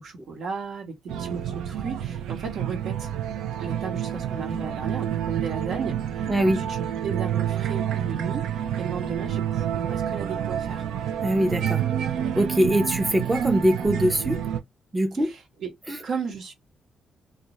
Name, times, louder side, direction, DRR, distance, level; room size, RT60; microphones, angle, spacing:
voice 1, 0.0-3.1 3.6-10.8 15.2-15.7 16.0-16.5, right 5 dB, 70° right, 0.9 m, -35 dB
sound 1, 1.1-14.6, right 10 dB, 90° right, 0.4 m, -28 dB
voice 2, 6.3-6.6 11.2-11.8 12.4-14.4 14.9-15.3 15.9-16.0, right 1 dB, 15° right, 0.5 m, -22 dB
2.3 x 2.1 x 2.8 m
cardioid pair, 85°, 0 cm